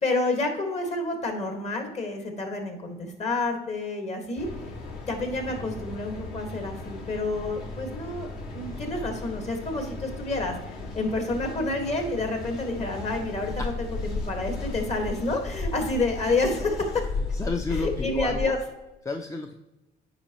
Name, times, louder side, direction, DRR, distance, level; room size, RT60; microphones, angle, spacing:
voice 1, 0.0-4.5 5.1-10.5 10.9-17.0 17.7-18.6, left 2 dB, 40° left, 4 dB, 1.6 m, -29 dB
Mechanical fan, 4.4-18.4, left 3 dB, 65° left, 2.0 m, -35 dB
voice 2, 17.3-18.6 19.1-19.5, left 3 dB, 20° left, 5 dB, 0.5 m, -31 dB
8.8 x 5.1 x 3.0 m, 1.0 s
cardioid pair, 110°, 17 cm